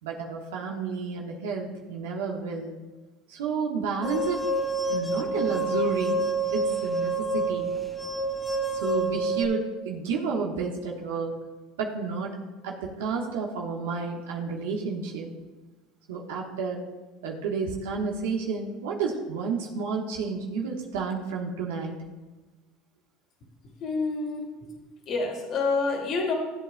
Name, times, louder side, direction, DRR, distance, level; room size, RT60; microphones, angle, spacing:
voice 1, 0.0-2.8 3.3-4.5 4.9-6.2 6.5-7.7 8.7-11.4 11.8-12.4 12.6-15.3 16.1-16.8 17.2-21.9, right 5 dB, 90° right, -1 dB, 1.1 m, -31 dB
sound 1, 4.0-9.4, right 2 dB, 5° left, 1.0 m, -28 dB
voice 2, 23.8-24.4 25.1-26.3, left 4 dB, 55° left, 0 dB, 2.2 m, -27 dB
14.5 x 7.9 x 2.2 m, 1.2 s
supercardioid pair, 95°, 0 cm